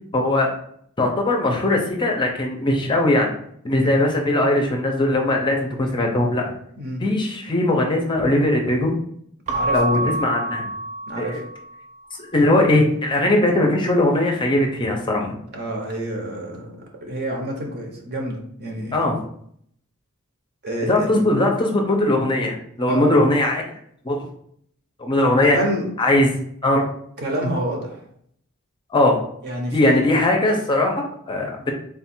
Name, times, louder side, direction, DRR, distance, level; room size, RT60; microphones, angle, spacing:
voice 1, 0.1-0.5 1.0-3.3 3.6-6.4 7.0-8.9 9.7-10.7 11.2-11.4 12.3-15.3 18.9-19.2 20.9-23.6 24.0-24.3 25.0-25.6 26.0-26.3 26.6-26.9 28.9-29.2 29.7-31.7, left 1 dB, 20° left, 1 dB, 0.6 m, -20 dB
Keyboard (musical) / Bell, 9.5-11.9, right 1 dB, 35° right, 0.4 m, -27 dB
voice 2, 9.5-10.1 11.1-11.4 15.5-16.7 17.0-19.0 20.6-21.3 22.9-23.2 25.1-25.8 27.2-28.0 29.4-30.0, right 1 dB, 50° right, 1 dB, 0.9 m, -28 dB
3.6 x 2.4 x 4.3 m, 0.67 s
head